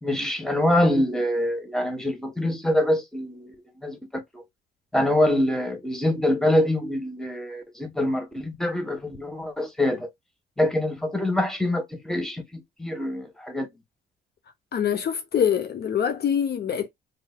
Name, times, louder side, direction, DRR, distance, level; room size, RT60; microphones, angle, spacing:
voice 1, 0.0-3.5 3.8-4.0 4.3-4.4 4.9-10.1 10.6-13.7, left 1 dB, ahead, 1.4 m, -25 dB
voice 2, 14.7-16.9, left 8 dB, 55° left, 0.7 m, -24 dB
3.9 x 3.3 x 2.2 m
cardioid pair, 90°, 20 cm